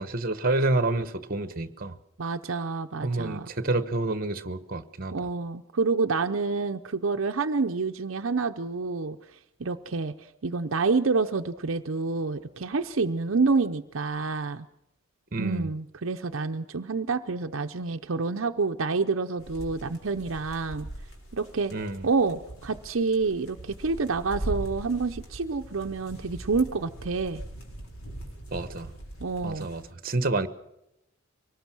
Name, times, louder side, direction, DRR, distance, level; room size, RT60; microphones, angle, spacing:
voice 1, 0.0-1.9 3.0-5.1 15.3-15.7 21.7-22.1 28.5-28.9 29.4-30.5, right 2 dB, 45° right, 11 dB, 1.2 m, -28 dB
voice 2, 2.2-3.5 5.1-10.1 10.4-14.7 15.4-20.9 21.3-21.7 22.0-27.4 29.2-29.7, right 4 dB, 70° right, 6 dB, 0.7 m, -28 dB
sound 1, 19.4-29.9, right 1 dB, 85° left, 4.7 m, -41 dB
24.5 x 19.5 x 6.1 m, 0.85 s
head